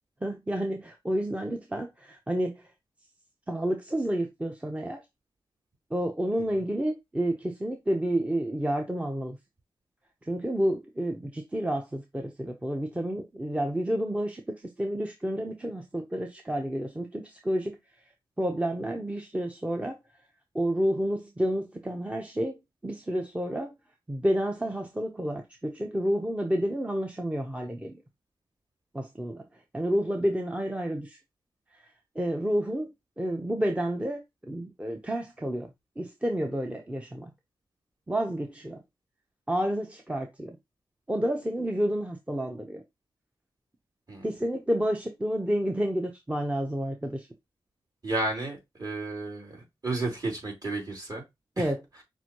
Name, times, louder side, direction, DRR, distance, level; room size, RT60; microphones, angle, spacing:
voice 1, 0.2-2.5 3.5-5.0 5.9-9.4 10.3-14.4 14.8-17.8 18.4-20.0 20.5-23.7 24.1-27.9 28.9-29.4 29.7-31.2 32.2-32.9 33.2-35.7 36.0-37.3 38.1-38.8 39.5-40.6 41.1-42.8 44.2-47.3 51.6-51.8, right 1 dB, 15° right, 0.7 m, -30 dB
voice 2, 48.0-51.2 51.6-51.7, right 2 dB, 40° right, 2.8 m, -32 dB
6.0 x 2.6 x 2.9 m
cardioid pair, 65°, 9 cm